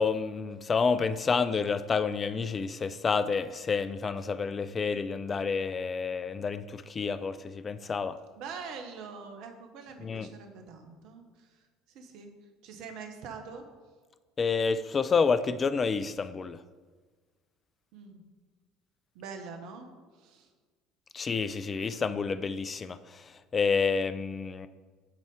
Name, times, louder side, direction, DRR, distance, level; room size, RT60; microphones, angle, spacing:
voice 1, 0.0-8.2 10.0-10.3 14.4-16.6 21.1-23.0 23.5-24.7, left 5 dB, 30° left, 14 dB, 0.4 m, -29 dB
voice 2, 8.4-12.3 12.6-13.6 17.9-18.2 19.1-19.9 20.1-20.5, right 5 dB, 60° right, 5 dB, 1.0 m, -44 dB
9.0 x 4.2 x 4.8 m, 1.4 s
hypercardioid pair, 65°, 0 cm